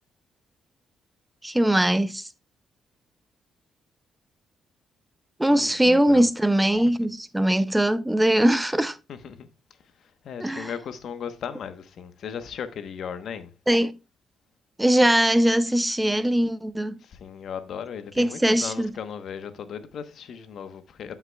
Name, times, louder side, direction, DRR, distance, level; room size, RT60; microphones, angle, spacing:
voice 1, 1.4-2.3 5.4-9.0 10.4-10.7 13.7-14.0 14.8-17.0 18.2-18.9, right 1 dB, 10° right, 0.5 m, -21 dB
voice 2, 5.5-6.3 9.1-9.5 10.2-13.5 17.0-21.2, left 7 dB, 65° left, 1.0 m, -36 dB
12.5 x 5.8 x 2.3 m
cardioid pair, 90°, 0 cm